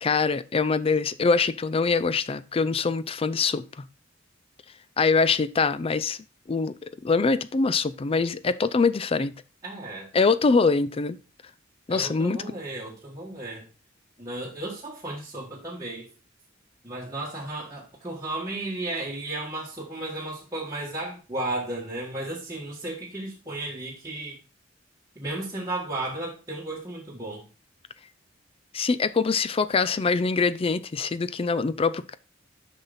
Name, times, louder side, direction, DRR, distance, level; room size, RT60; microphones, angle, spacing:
voice 1, 0.0-3.8 5.0-6.2 6.5-9.3 10.1-11.2 11.9-12.4 28.7-32.2, left 4 dB, 30° left, 0.4 m, -24 dB
voice 2, 9.6-10.1 11.9-13.6 14.2-16.1 16.8-24.4 25.1-27.5, right 2 dB, 15° right, 1.5 m, -34 dB
7.0 x 5.7 x 3.9 m
head